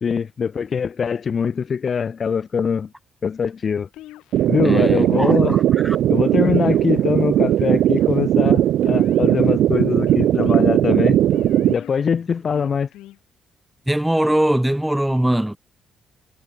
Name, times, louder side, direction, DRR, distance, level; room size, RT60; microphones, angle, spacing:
voice 1, 0.0-2.9 3.2-3.9 4.5-5.6 6.1-11.2 11.7-12.9, left 6 dB, 45° left, 0.4 m, -22 dB
sound 1, 3.9-4.6 5.1-5.7 6.4-7.1 7.5-8.2 8.8-9.5 10.1-10.6 11.3-12.0 12.5-13.2, left 15 dB, 90° left, 2.5 m, -41 dB
sound 2, 4.3-11.7, right 12 dB, 75° right, 0.4 m, -18 dB
voice 2, 4.6-6.0 13.9-15.6, right 1 dB, 5° right, 1.1 m, -21 dB
cardioid pair, 90°, 0 cm